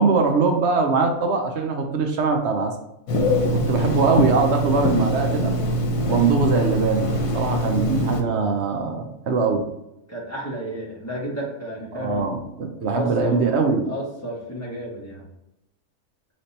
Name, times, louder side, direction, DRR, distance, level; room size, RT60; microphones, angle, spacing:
voice 1, 0.0-2.7 3.7-5.5 6.1-9.6 11.9-13.9, right 4 dB, 60° right, 3 dB, 0.9 m, -22 dB
Telephone, 3.1-8.2, equal, 85° left, 1.2 m, -23 dB
voice 2, 3.2-3.5 10.1-12.3 12.9-13.4 13.8-15.2, equal, 10° left, -6 dB, 1.4 m, -32 dB
5.0 x 3.2 x 2.8 m, 0.89 s
omnidirectional pair, 1.4 m